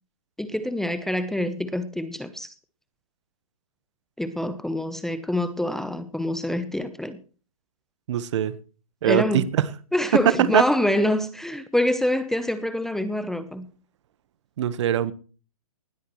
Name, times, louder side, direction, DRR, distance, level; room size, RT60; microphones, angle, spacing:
voice 1, 0.4-2.5 4.2-7.2 9.0-9.5 9.9-13.7, left 1 dB, ahead, 13 dB, 0.7 m, -26 dB
voice 2, 8.1-8.5 9.0-9.7 10.5-10.6 14.6-15.1, right 10 dB, 50° right, 16 dB, 1.2 m, -22 dB
19.0 x 13.0 x 3.1 m, 0.37 s
hypercardioid pair, 130°, 19 cm